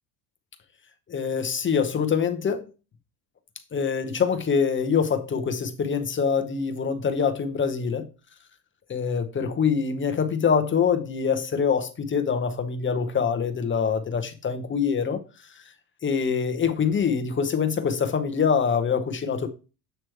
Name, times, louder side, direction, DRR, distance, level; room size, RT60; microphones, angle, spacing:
voice 1, 1.1-2.7 3.7-8.1 8.9-15.2 16.0-19.5, left 6 dB, 25° left, 0.7 m, -24 dB
7.8 x 3.2 x 4.5 m
supercardioid pair, 115°, 48 cm